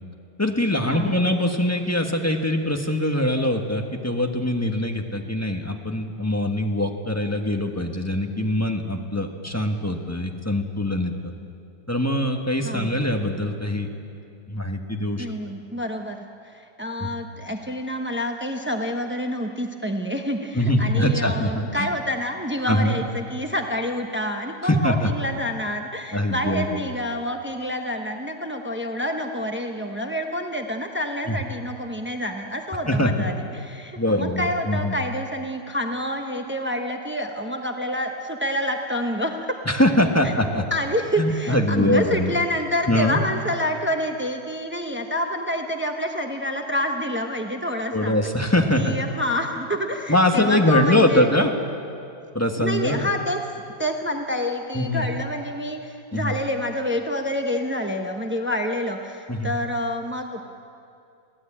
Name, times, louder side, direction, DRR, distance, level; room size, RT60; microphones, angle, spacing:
voice 1, 0.4-11.3 11.9-13.9 14.5-15.2 17.0-17.1 20.5-21.9 22.7-23.0 24.6-25.1 26.1-26.8 31.3-31.4 32.9-33.3 34.0-34.9 39.6-40.6 41.2-42.3 42.9-43.2 47.9-48.9 50.1-51.5 52.3-53.1 54.7-55.1 56.1-56.3 59.3-59.5, left 1 dB, 10° left, 2 dB, 1.3 m, -23 dB
voice 2, 15.2-39.6 40.2-40.3 40.7-48.2 48.7-51.3 52.6-60.4, equal, 15° right, 3 dB, 0.3 m, -28 dB
22.5 x 16.5 x 8.7 m, 2.5 s
omnidirectional pair, 2.0 m